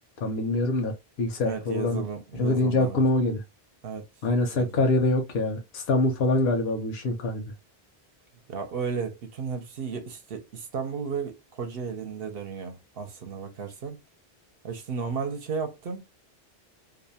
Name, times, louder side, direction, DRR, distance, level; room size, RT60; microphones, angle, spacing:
voice 1, 0.2-2.0 2.4-3.4 4.2-7.4, left 2 dB, 75° left, 0.9 m, -25 dB
voice 2, 1.4-3.0 3.8-4.1 4.5-4.8 8.5-14.0 14.6-16.0, right 6 dB, 65° right, 0.8 m, -34 dB
2.5 x 2.1 x 2.6 m
omnidirectional pair, 1.1 m